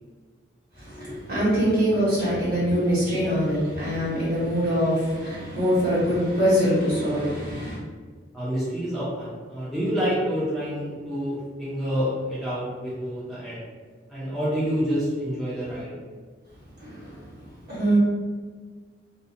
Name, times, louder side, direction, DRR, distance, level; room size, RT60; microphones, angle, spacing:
voice 1, 0.7-7.8 16.8-18.0, equal, 50° right, -9 dB, 1.4 m, -24 dB
voice 2, 8.3-13.6 14.1-16.0, equal, ahead, -10 dB, 0.4 m, -28 dB
2.7 x 2.1 x 2.4 m, 1.5 s
head